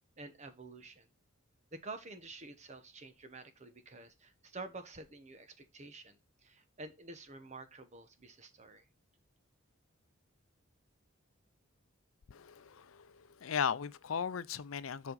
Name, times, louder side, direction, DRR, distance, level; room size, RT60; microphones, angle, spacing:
voice 1, 0.2-1.1 1.7-8.8, right 3 dB, 35° right, 1.1 m, -49 dB
voice 2, 12.3-15.1, left 7 dB, 75° left, 0.5 m, -37 dB
7.3 x 4.9 x 3.9 m
head